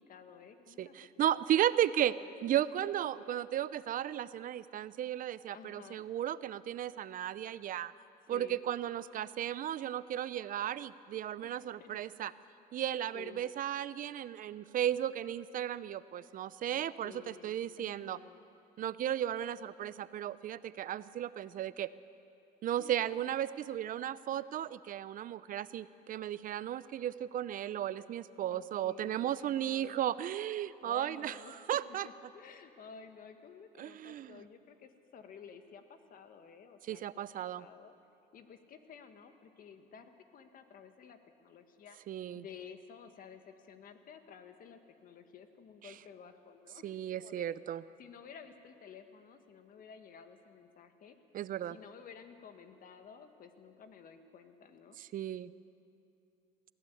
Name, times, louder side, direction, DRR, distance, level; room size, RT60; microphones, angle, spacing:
voice 1, 0.0-1.6 2.0-2.6 5.5-6.0 8.3-8.6 11.4-12.0 13.1-13.4 16.7-18.4 22.8-23.2 23.9-24.0 28.5-30.0 30.8-31.7 32.0-37.9 38.3-42.0 42.3-47.5 48.0-51.2 51.7-55.0, left 7 dB, 55° left, 7 dB, 1.7 m, -53 dB
voice 2, 0.8-2.1 2.4-7.9 8.3-12.3 12.7-18.2 18.8-21.9 22.6-31.4 31.7-32.1 33.8-34.4 36.9-37.6 42.1-42.4 45.8-45.9 46.8-47.8 51.3-51.8 55.0-55.5, right 11 dB, 55° right, 16 dB, 0.6 m, -35 dB
22.0 x 16.0 x 8.6 m, 2.6 s
cardioid pair, 110°, 17 cm